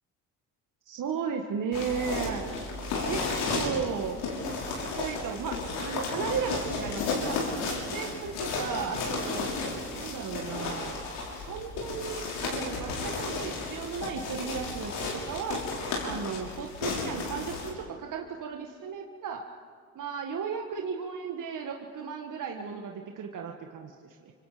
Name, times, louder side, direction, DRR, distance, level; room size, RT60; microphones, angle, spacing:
voice 1, 0.9-2.4 3.0-3.2 3.5-4.2 4.7-7.4 7.7-9.5 9.9-11.0 11.3-15.6 16.0-19.4 20.0-24.3, right 6 dB, 50° right, 3 dB, 1.9 m, -35 dB
sound 1, 1.7-17.7, left 3 dB, 75° left, 6.3 m, -33 dB
27.0 x 25.5 x 5.2 m, 2.2 s
hypercardioid pair, 65°, 39 cm